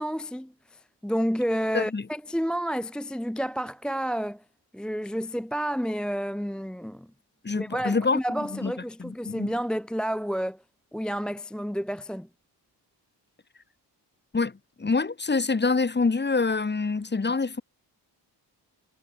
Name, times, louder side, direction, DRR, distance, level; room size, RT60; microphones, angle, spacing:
voice 1, 0.0-4.4 4.7-7.1 7.5-10.6 10.9-12.3, equal, ahead, 0.5 m, -30 dB
voice 2, 1.7-2.1 7.4-8.2 8.5-8.7 9.0-9.5 14.3-14.5 14.8-17.6, left 4 dB, 25° left, 1.9 m, -26 dB
cardioid pair, 100°, 42 cm